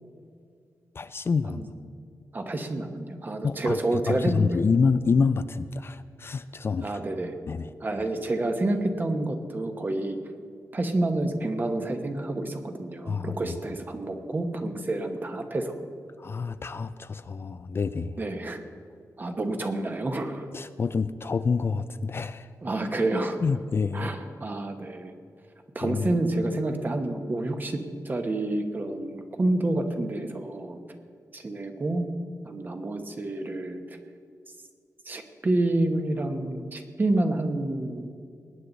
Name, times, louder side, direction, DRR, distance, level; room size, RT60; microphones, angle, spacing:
voice 1, 1.0-1.6 3.4-3.8 4.1-7.0 7.5-7.7 13.1-13.6 16.2-18.2 20.5-22.5 23.4-24.1 25.8-26.2, left 5 dB, 40° left, 0.4 m, -27 dB
voice 2, 2.3-4.4 6.8-7.3 7.8-10.2 10.7-15.7 18.2-18.6 19.2-20.5 22.6-23.4 23.9-25.1 25.7-30.8 31.3-32.0 32.4-33.8 35.0-38.1, right 2 dB, 30° right, 1.2 m, -28 dB
19.5 x 9.4 x 4.0 m
wide cardioid pair, 130°, 6 cm